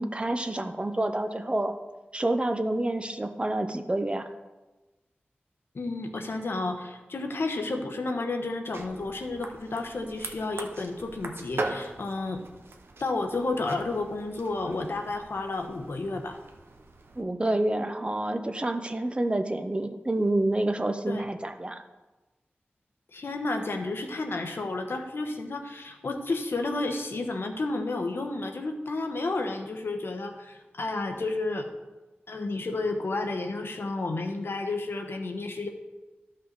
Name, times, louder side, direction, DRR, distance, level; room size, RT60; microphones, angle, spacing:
voice 1, 0.0-1.7 2.1-4.2 17.2-21.8, right 1 dB, 25° right, 7 dB, 0.8 m, -28 dB
voice 2, 5.7-12.4 13.0-16.4 21.1-21.2 23.1-31.7 32.3-35.7, left 2 dB, 75° left, 4 dB, 1.0 m, -31 dB
sound 1, 8.7-17.2, right 2 dB, 75° right, 0.9 m, -40 dB
12.5 x 5.4 x 4.0 m, 1.1 s
wide cardioid pair, 60°, 4 cm